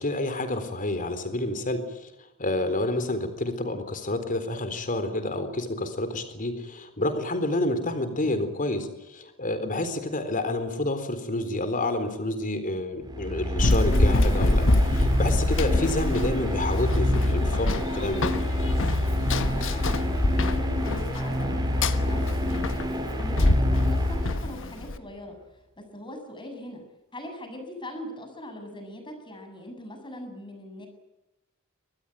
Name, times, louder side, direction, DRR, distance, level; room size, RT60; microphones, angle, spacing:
voice 1, 0.0-1.8 2.4-17.7 17.9-18.3, left 2 dB, 40° left, 10 dB, 3.9 m, -29 dB
sound 1, 13.0-24.8, left 1 dB, 20° right, 5.3 m, -27 dB
Run, 13.6-25.0, left 1 dB, 60° left, 1.4 m, -26 dB
voice 2, 19.5-22.9 23.2-25.3 25.9-26.8 27.1-30.9, left 1 dB, 20° left, 5 dB, 7.6 m, -40 dB
24.5 x 19.5 x 9.2 m, 1.0 s
head